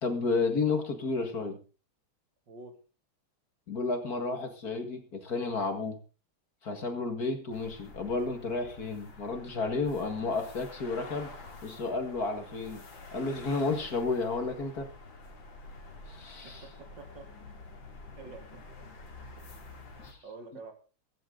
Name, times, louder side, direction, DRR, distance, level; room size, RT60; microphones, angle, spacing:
voice 1, 0.0-1.6 3.7-6.0 6.6-11.3 11.6-12.8 13.1-14.9 16.1-16.6 20.0-20.2, left 3 dB, 50° left, 7 dB, 2.3 m, -32 dB
voice 2, 2.5-2.8 16.4-17.5 18.2-18.6 20.2-20.7, right 3 dB, 60° right, 6 dB, 3.1 m, -47 dB
sound 1, 7.5-20.1, left 3 dB, 65° left, 3.5 m, -48 dB
15.5 x 14.5 x 3.9 m, 0.34 s
omnidirectional pair, 2.2 m